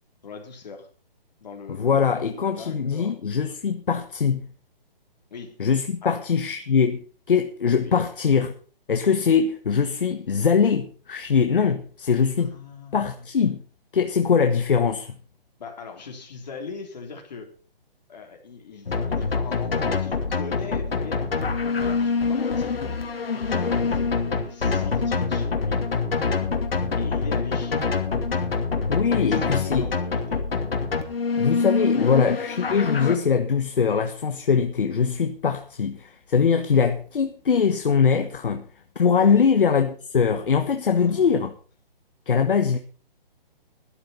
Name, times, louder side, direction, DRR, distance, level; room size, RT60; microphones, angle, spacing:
voice 1, 0.2-0.9 1.4-3.2 5.3-5.6 6.0-6.2 7.8-7.9 12.4-13.3 15.6-17.5 18.1-22.8 23.3-25.9 27.0-27.9 29.1-30.5 31.8-31.9 39.1-39.4 40.9-41.3, left 5 dB, 45° left, 3.6 m, -40 dB
voice 2, 1.8-4.4 5.6-8.5 8.9-12.5 12.9-13.6 13.9-15.1 28.9-29.9 31.3-38.6 38.9-41.5 42.3-42.8, left 6 dB, 65° left, 1.4 m, -22 dB
sound 1, 18.9-33.2, left 4 dB, 80° left, 2.6 m, -25 dB
13.0 x 11.5 x 5.5 m
hypercardioid pair, 175°, 29 cm